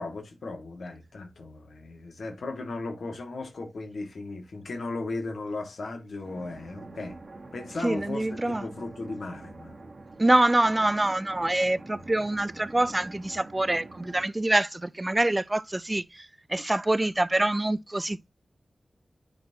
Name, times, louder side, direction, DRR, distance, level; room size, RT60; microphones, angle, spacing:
voice 1, 0.0-7.2 7.5-9.7, left 3 dB, 80° left, 1.7 m, -36 dB
sound 1, 6.2-14.2, right 2 dB, 60° right, 1.2 m, -45 dB
voice 2, 7.8-8.6 10.2-18.3, right 1 dB, 25° right, 0.4 m, -25 dB
10.5 x 4.0 x 2.8 m
cardioid pair, 60°, 0 cm